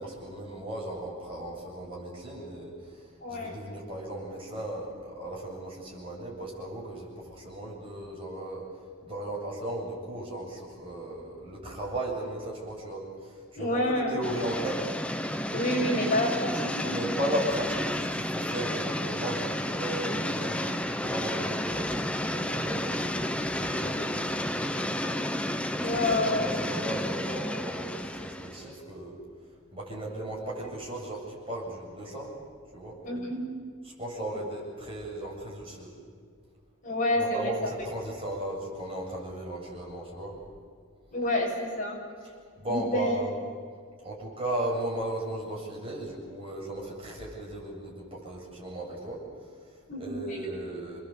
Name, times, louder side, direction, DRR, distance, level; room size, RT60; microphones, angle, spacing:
voice 1, 0.0-14.9 16.8-25.2 25.8-29.2 29.7-32.3 32.7-33.0 33.8-36.0 37.2-40.3 42.2-43.3 44.0-49.7 50.0-51.0, right 1 dB, 25° right, -3 dB, 7.8 m, -36 dB
voice 2, 3.2-3.6 13.6-14.1 15.5-17.0 20.0-20.2 25.8-26.5 33.0-33.5 36.8-37.5 41.1-42.0 42.7-43.2 49.9-50.4, left 1 dB, 40° left, -2 dB, 7.0 m, -28 dB
sound 1, 14.2-28.7, left 1 dB, 5° left, 0.8 m, -31 dB
29.5 x 21.0 x 8.4 m, 2.1 s
head